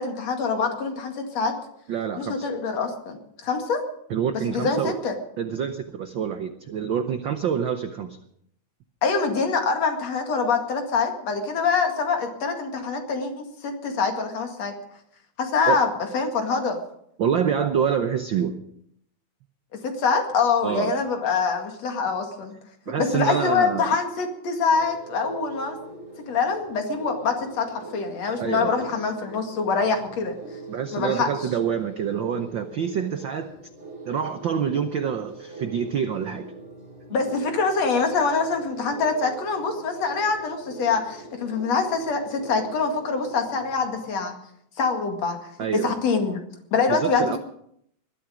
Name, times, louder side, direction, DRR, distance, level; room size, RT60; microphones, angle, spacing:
voice 1, 0.0-1.5 2.2-3.9 4.5-5.1 9.0-14.8 15.4-15.9 16.1-16.8 19.7-22.5 23.0-25.8 26.3-30.4 30.9-31.3 37.1-44.4 44.8-45.4 45.7-46.4 46.7-47.4, left 4 dB, 60° left, 4 dB, 3.2 m, -25 dB
voice 2, 1.9-2.5 4.1-4.9 5.4-8.2 15.7-15.8 17.2-18.6 20.6-20.9 22.9-23.9 28.4-28.9 30.7-33.5 34.1-36.5 45.6-45.9 46.9-47.4, right 7 dB, 90° right, 8 dB, 1.0 m, -26 dB
sound 1, 24.6-44.1, right 2 dB, 15° right, 5.0 m, -42 dB
20.5 x 12.5 x 5.1 m, 0.71 s
omnidirectional pair, 3.4 m